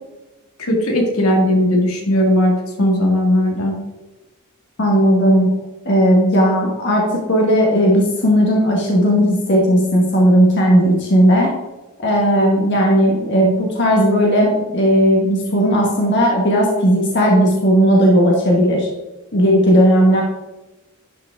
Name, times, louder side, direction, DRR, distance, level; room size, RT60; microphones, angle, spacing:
voice 1, 0.6-2.5 2.8-3.7, left 1 dB, 85° left, 1 dB, 1.9 m, -17 dB
voice 2, 4.8-5.5 5.8-11.5 12.0-18.9 19.3-20.2, equal, 55° left, -2 dB, 1.3 m, -15 dB
11.0 x 4.8 x 3.5 m, 1.1 s
head